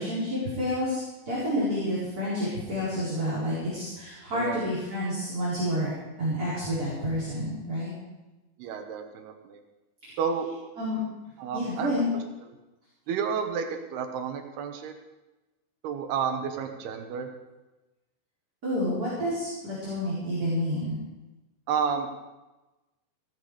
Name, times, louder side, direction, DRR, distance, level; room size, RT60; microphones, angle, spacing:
voice 1, 0.0-5.9 6.2-7.9 10.0-10.2 10.8-11.0 11.5-12.1 18.6-21.0, equal, 20° right, -10 dB, 4.7 m, -29 dB
voice 2, 8.6-9.6 10.2-10.5 11.4-12.0 13.1-14.9 15.8-17.3 21.7-22.1, right 6 dB, 80° right, 6 dB, 3.2 m, -31 dB
16.0 x 12.5 x 4.9 m, 1.1 s
omnidirectional pair, 4.6 m